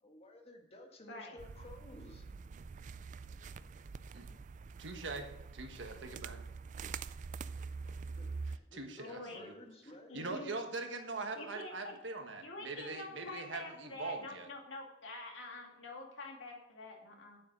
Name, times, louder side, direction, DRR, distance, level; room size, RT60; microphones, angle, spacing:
voice 1, 0.0-2.3 7.8-10.3, left 1 dB, 35° left, 1.6 m, -54 dB
sound 1, 1.4-8.6, right 4 dB, 40° right, 0.3 m, -45 dB
voice 2, 4.8-5.3 5.5-6.4 8.4-9.5 9.8-14.5, right 3 dB, 80° right, 1.4 m, -42 dB
voice 3, 9.0-9.4 10.1-10.7 11.4-12.0 12.4-17.4, left 2 dB, 85° left, 2.4 m, -47 dB
9.1 x 7.7 x 6.2 m
head